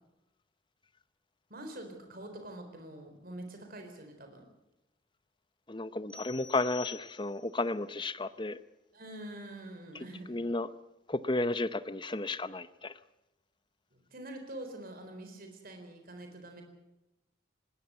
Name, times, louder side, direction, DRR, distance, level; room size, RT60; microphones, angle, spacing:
voice 1, 1.5-4.4 8.9-10.4 13.9-16.6, right 1 dB, 45° right, 5 dB, 4.1 m, -45 dB
voice 2, 5.7-8.6 10.3-10.7 11.1-12.9, left 2 dB, 25° left, 14 dB, 0.8 m, -33 dB
sound 1, 6.1-7.6, left 8 dB, 5° left, 5.6 m, -48 dB
20.0 x 19.5 x 8.2 m, 0.94 s
head